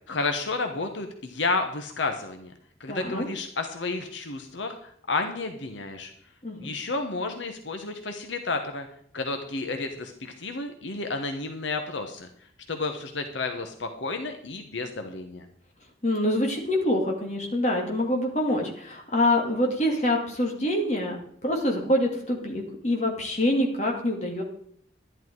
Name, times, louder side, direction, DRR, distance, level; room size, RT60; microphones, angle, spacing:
voice 1, 0.1-2.5 2.8-6.1 6.6-8.9 9.1-12.3 12.7-15.5, left 3 dB, 80° left, 6 dB, 1.2 m, -31 dB
voice 2, 2.9-3.3 6.4-6.8 16.0-21.2 21.4-24.4, left 1 dB, 35° left, 1 dB, 2.5 m, -25 dB
11.5 x 11.0 x 4.7 m, 0.65 s
head